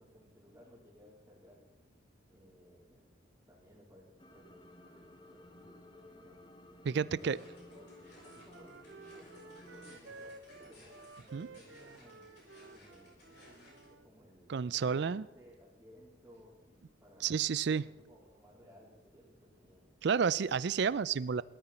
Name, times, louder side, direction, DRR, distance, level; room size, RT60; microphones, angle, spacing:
voice 1, 0.0-1.6 2.3-3.0 3.5-6.5 6.8-12.3 12.7-17.4 17.7-19.9, equal, 10° right, -11 dB, 3.8 m, -60 dB
sound 1, 4.2-10.0, left 1 dB, 25° left, 1.0 m, -56 dB
voice 2, 6.8-7.4 11.3-11.5 14.5-15.3 17.2-17.9 20.0-21.4, right 6 dB, 55° right, 20 dB, 0.4 m, -30 dB
sound 2, 7.2-13.9, left 1 dB, 55° left, 6.7 m, -60 dB
Wind instrument woodwind instrument, 7.7-14.1, right 3 dB, 75° right, 0.9 m, -54 dB
18.5 x 13.0 x 4.3 m, 1.0 s
head